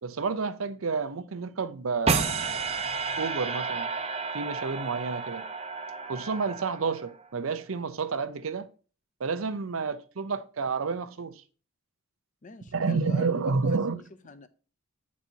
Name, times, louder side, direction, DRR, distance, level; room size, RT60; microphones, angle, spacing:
voice 1, 0.0-2.3 3.2-3.9 4.3-5.5 6.1-8.7 9.2-11.4 12.7-14.0, right 4 dB, 75° right, 0.6 m, -30 dB
sound 1, 2.1-7.3, right 4 dB, 30° right, 0.6 m, -31 dB
voice 2, 12.4-14.5, left 3 dB, 35° left, 0.6 m, -43 dB
9.2 x 4.1 x 4.5 m
head